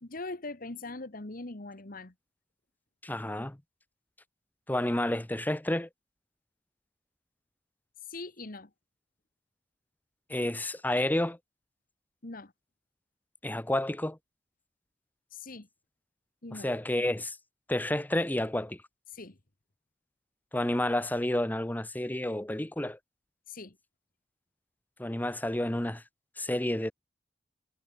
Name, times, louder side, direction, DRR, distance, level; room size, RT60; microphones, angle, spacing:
voice 1, 0.0-2.1 8.0-8.7 12.2-12.5 15.3-15.7 16.4-16.7 19.1-19.4 23.5-23.8, left 3 dB, 50° left, 1.7 m, -41 dB
voice 2, 3.0-3.6 4.7-5.9 10.3-11.4 13.4-14.2 16.5-17.4 17.7-18.8 20.5-23.0 25.0-26.0 26.4-26.9, left 1 dB, 10° left, 0.9 m, -30 dB
head